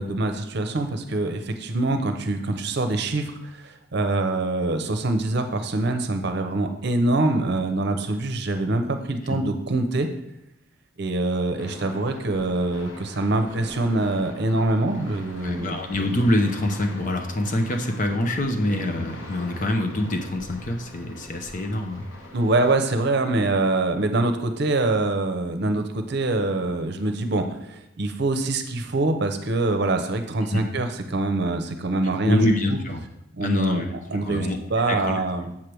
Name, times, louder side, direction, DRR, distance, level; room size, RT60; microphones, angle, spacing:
voice 1, 0.0-10.1 11.0-15.8 22.3-32.4 33.4-33.8 34.1-35.5, right 2 dB, 60° right, 7 dB, 0.7 m, -24 dB
sound 1, 11.6-22.8, left 1 dB, 90° left, 1.3 m, -43 dB
voice 2, 15.4-22.1 30.5-30.6 32.2-33.0 33.4-33.9 34.2-34.6 34.9-35.2, left 1 dB, 40° left, 4 dB, 0.8 m, -25 dB
7.3 x 3.3 x 6.0 m, 0.85 s
head